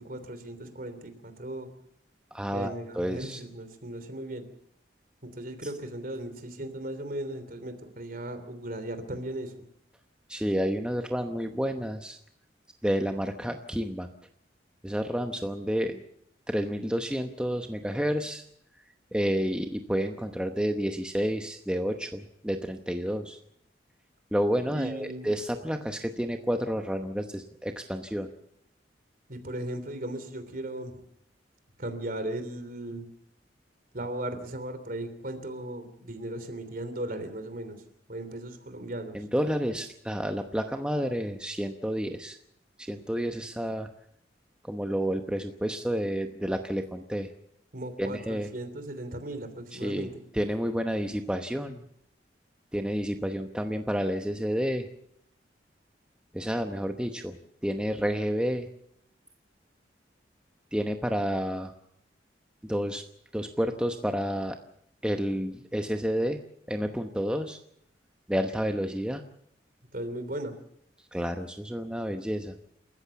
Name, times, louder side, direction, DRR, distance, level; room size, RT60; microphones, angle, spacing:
voice 1, 0.0-1.7 2.5-4.5 5.2-9.6 24.6-25.3 29.3-31.0 31.8-33.0 33.9-37.8 38.1-39.2 47.7-50.1 69.9-70.6, right 1 dB, 50° right, 10 dB, 3.2 m, -37 dB
voice 2, 2.3-3.4 10.3-12.2 12.8-14.1 14.8-16.0 16.5-18.4 19.1-23.4 24.3-28.3 39.1-42.4 42.8-43.9 44.6-47.3 48.0-48.5 49.7-50.1 50.3-51.8 52.7-54.9 56.3-57.4 57.6-58.7 60.7-61.7 62.6-63.0 63.3-64.6 65.0-66.4 66.7-67.6 68.3-69.2 71.1-72.6, equal, 5° right, 5 dB, 0.9 m, -30 dB
28.0 x 14.5 x 7.0 m, 0.71 s
head